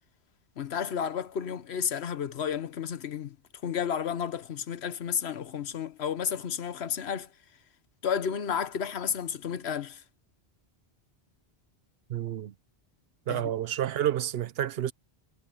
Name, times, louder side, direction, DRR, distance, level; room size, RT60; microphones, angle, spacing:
voice 1, 0.6-3.4 3.6-7.3 8.0-10.0 13.3-13.4, left 7 dB, 75° left, 1.2 m, -32 dB
voice 2, 12.1-12.5 13.3-14.9, right 11 dB, 70° right, 0.8 m, -29 dB
omnidirectional pair, 1.1 m